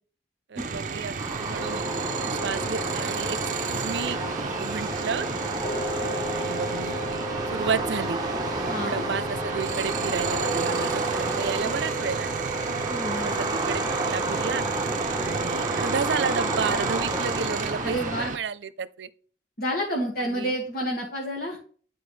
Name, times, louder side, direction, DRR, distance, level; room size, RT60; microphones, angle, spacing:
voice 1, 0.5-1.8 2.2-4.2 4.6-5.3 6.3-7.2 7.5-8.2 8.6-12.4 13.2-14.6 15.1-19.1 20.2-20.6, right 5 dB, 90° right, 0.5 m, -32 dB
sound 1, 0.6-18.4, right 5 dB, 45° right, 0.6 m, -33 dB
sound 2, 1.2-18.3, right 2 dB, 20° right, 0.9 m, -31 dB
sound 3, 1.6-16.7, right 2 dB, 35° left, 0.8 m, -35 dB
voice 2, 8.7-9.0 12.9-13.3 17.8-18.3 19.6-21.6, equal, 55° left, 1.8 m, -29 dB
10.0 x 4.6 x 3.2 m
head